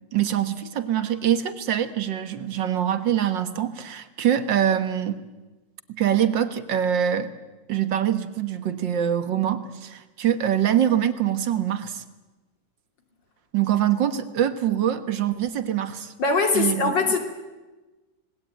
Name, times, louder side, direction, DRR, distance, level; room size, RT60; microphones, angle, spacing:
voice 1, 0.1-5.2 6.0-7.3 7.7-12.0 13.5-16.1 16.5-17.1, right 10 dB, 90° right, 10 dB, 2.1 m, -24 dB
voice 2, 16.2-17.2, left 3 dB, 85° left, 4 dB, 3.7 m, -21 dB
26.0 x 19.5 x 9.2 m, 1.2 s
omnidirectional pair, 1.9 m